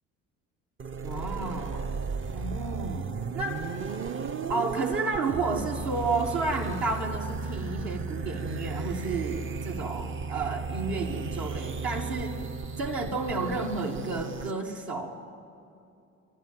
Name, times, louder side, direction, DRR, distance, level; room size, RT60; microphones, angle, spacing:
sound 1, 0.8-14.5, right 5 dB, 30° right, 0.8 m, -35 dB
voice 1, 1.0-1.9 2.3-3.1 3.3-3.6 4.5-12.4 12.8-15.2, right 3 dB, 60° right, 0 dB, 2.1 m, -31 dB
26.0 x 11.5 x 9.3 m, 2.6 s
hypercardioid pair, 55°, 40 cm